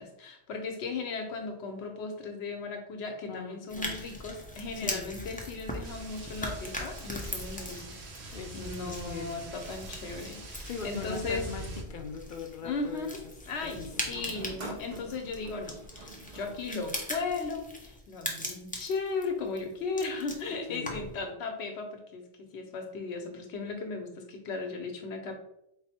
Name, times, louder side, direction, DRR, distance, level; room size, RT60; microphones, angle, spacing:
voice 1, 0.0-11.4 12.6-13.8 14.1-25.3, left 4 dB, 90° left, 5 dB, 1.0 m, -36 dB
voice 2, 3.3-4.0 4.8-5.1 8.3-9.5 10.6-13.3 13.6-14.1 20.7-21.0, left 6 dB, 60° left, 5 dB, 0.6 m, -41 dB
sound 1, 3.7-21.2, left 1 dB, 10° left, 0.4 m, -41 dB
sound 2, 5.8-11.8, right 3 dB, 75° right, 1.0 m, -44 dB
sound 3, 11.5-12.4 13.9-17.4, right 3 dB, 50° right, 0.7 m, -47 dB
4.1 x 2.1 x 4.2 m, 0.79 s
omnidirectional pair, 1.1 m